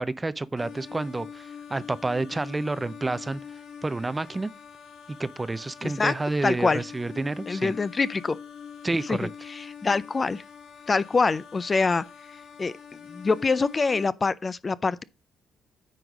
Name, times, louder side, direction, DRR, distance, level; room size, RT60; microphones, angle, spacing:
voice 1, 0.0-3.4 3.8-4.5 5.1-7.7 8.8-9.3, right 2 dB, 20° right, 0.5 m, -29 dB
sound 1, 0.6-14.1, left 7 dB, 65° left, 2.0 m, -44 dB
voice 2, 5.8-6.1 6.4-6.8 7.5-8.4 9.1-10.4 10.9-12.0 12.6-12.7 13.1-15.0, left 4 dB, 30° left, 0.4 m, -25 dB
9.3 x 4.0 x 4.9 m
cardioid pair, 90°, 0 cm